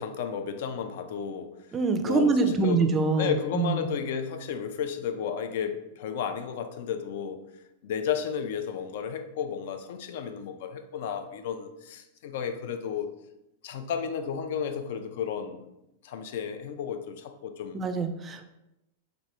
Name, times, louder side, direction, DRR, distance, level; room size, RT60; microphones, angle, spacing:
voice 1, 0.0-1.5 2.0-2.9 3.2-7.4 7.8-13.1 13.6-15.7 16.0-17.8, left 7 dB, 60° left, 8 dB, 0.3 m, -33 dB
voice 2, 1.7-3.9 17.7-18.4, right 4 dB, 25° right, 7 dB, 0.4 m, -25 dB
3.0 x 2.5 x 2.9 m, 0.88 s
hypercardioid pair, 100°, 0 cm